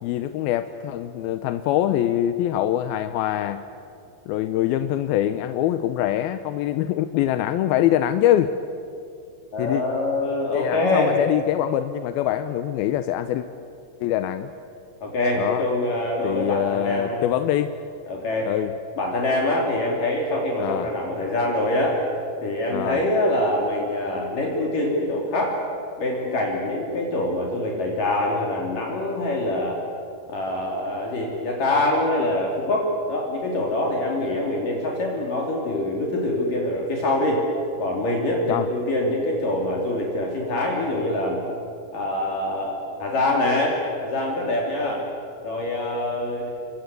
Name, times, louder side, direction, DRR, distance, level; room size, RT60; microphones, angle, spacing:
voice 1, 0.0-3.6 4.3-8.5 9.6-9.8 10.5-13.5 14.0-14.5 15.4-15.7 16.2-17.7 18.4-18.7 20.6-20.9 22.7-23.0 38.5-38.7, left 12 dB, 75° left, 10 dB, 2.3 m, -24 dB
voice 2, 9.5-11.2 15.0-17.2 18.1-18.5 19.0-22.0 22.4-25.6 26.0-29.8 30.3-37.4 37.8-41.4 41.9-45.1 45.4-46.5, left 1 dB, 55° left, -1 dB, 4.2 m, -24 dB
29.0 x 23.5 x 8.3 m, 2.6 s
omnidirectional pair, 5.0 m